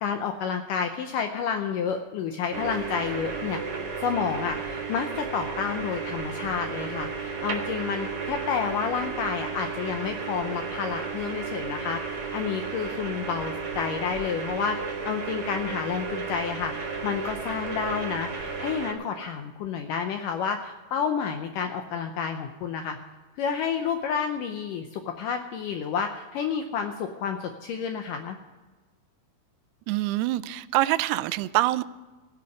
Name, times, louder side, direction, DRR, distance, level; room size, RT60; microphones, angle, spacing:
voice 1, 0.0-3.6 4.0-14.8 15.0-23.0 23.4-28.4, left 6 dB, 80° left, 6 dB, 1.9 m, -30 dB
sound 1, 2.5-18.9, right 5 dB, 50° right, 2.0 m, -33 dB
voice 2, 29.9-31.8, right 16 dB, 90° right, 15 dB, 2.6 m, -25 dB
16.0 x 5.7 x 9.3 m, 1.3 s
omnidirectional pair, 4.6 m